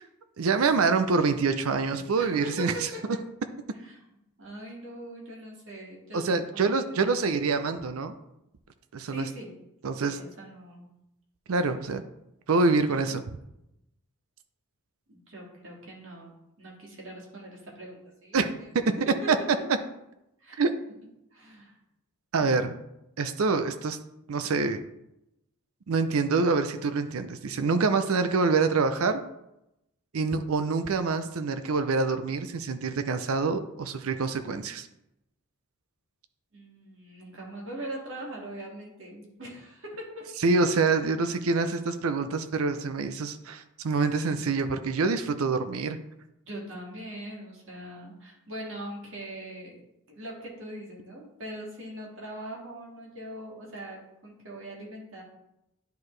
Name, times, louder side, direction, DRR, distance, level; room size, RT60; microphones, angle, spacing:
voice 1, 0.4-2.7 6.1-8.1 8.9-9.3 9.8-10.2 11.5-12.0 12.5-13.2 18.3-18.5 18.7-18.9 19.3-19.4 19.7-19.8 20.6-20.7 22.3-22.7 23.2-24.0 24.3-24.8 25.9-29.2 30.1-34.9 40.4-46.0, right 4 dB, 75° right, 9 dB, 0.5 m, -26 dB
voice 2, 2.1-3.0 3.8-4.0 4.4-7.3 9.1-9.5 10.0-10.9 12.8-13.3 15.1-18.7 19.1-19.3 20.4-20.7 21.3-21.7 36.5-40.3 46.4-49.8 50.1-55.2, right 1 dB, 60° right, -2 dB, 2.0 m, -41 dB
10.5 x 4.6 x 3.2 m, 0.86 s
head